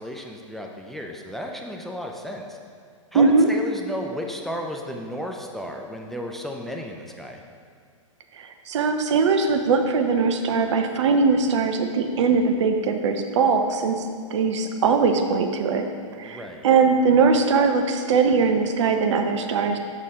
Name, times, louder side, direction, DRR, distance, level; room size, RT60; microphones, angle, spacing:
voice 1, 0.0-2.6 3.1-7.4 16.1-16.7, equal, ahead, 1 dB, 0.5 m, -33 dB
voice 2, 3.1-3.5 8.4-15.9 16.2-19.8, right 4 dB, 60° right, 6 dB, 0.8 m, -21 dB
7.3 x 6.6 x 3.7 m, 2.2 s
figure-of-eight pair, 110°, 17 cm